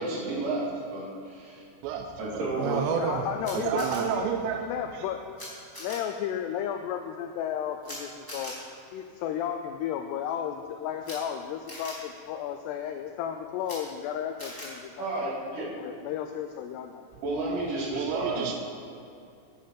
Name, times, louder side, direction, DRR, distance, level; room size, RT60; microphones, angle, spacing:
voice 1, 0.0-1.6 2.2-2.8 15.0-15.7 17.2-18.6, right 2 dB, 50° right, -6 dB, 3.7 m, -31 dB
voice 2, 1.8-3.2 3.5-4.6 4.9-5.1 18.0-18.6, right 8 dB, 85° right, 4 dB, 2.6 m, -30 dB
voice 3, 2.9-3.9 4.2-4.3 4.6-5.2 5.8-8.6 8.9-15.1 15.8-17.1, left 9 dB, 90° left, 6 dB, 2.3 m, -33 dB
Camera, 3.4-4.0 5.4-5.5 5.7-6.0 7.8-8.0 8.3-8.5 11.0-11.1 11.7-11.9 13.6-13.8 14.4-14.7, left 1 dB, 10° left, 1.3 m, -40 dB
10.0 x 9.6 x 5.6 m, 2.5 s
omnidirectional pair, 5.4 m